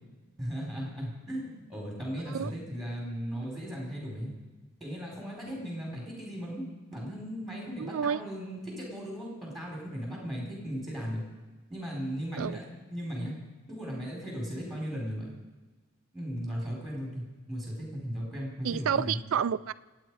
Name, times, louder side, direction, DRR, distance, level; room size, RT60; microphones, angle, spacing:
voice 1, 0.4-4.3 4.8-6.6 6.9-11.2 11.7-12.6 12.9-13.4 13.7-15.3 16.1-19.2, equal, ahead, -2 dB, 4.2 m, -36 dB
voice 2, 7.8-8.2 12.3-12.6 18.6-19.7, right 7 dB, 65° right, 13 dB, 0.3 m, -30 dB
27.0 x 9.2 x 4.8 m, 1.3 s
head